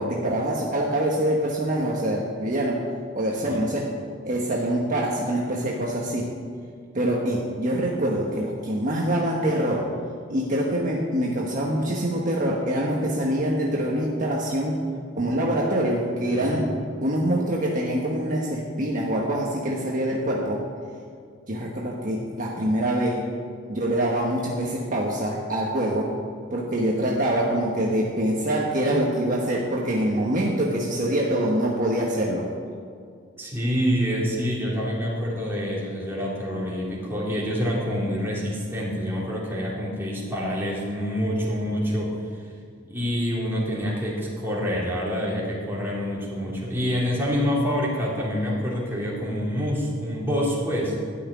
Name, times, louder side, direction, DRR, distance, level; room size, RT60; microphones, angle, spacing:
voice 1, 0.0-2.9 3.1-3.9 4.2-6.3 6.9-9.9 10.3-14.8 15.2-16.7 17.0-20.6 21.5-23.2 23.7-26.1 26.5-32.5, right 1 dB, 45° right, -3 dB, 1.4 m, -25 dB
voice 2, 16.3-16.6 33.4-42.1 42.9-51.0, equal, 10° right, -6 dB, 3.3 m, -27 dB
13.0 x 6.1 x 9.7 m, 2.3 s
head